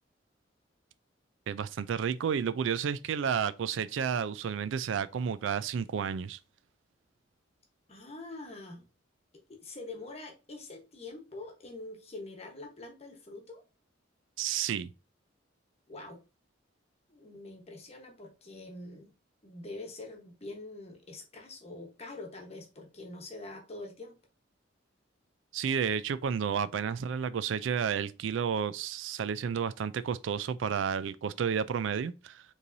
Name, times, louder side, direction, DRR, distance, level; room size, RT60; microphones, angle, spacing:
voice 1, 1.5-6.4 14.4-14.9 25.5-32.4, right 7 dB, 70° right, 0.3 m, -31 dB
voice 2, 7.9-8.9 9.5-13.6 15.9-16.2 17.1-19.1 19.4-24.2, left 2 dB, 35° left, 1.0 m, -45 dB
5.2 x 3.2 x 2.6 m
head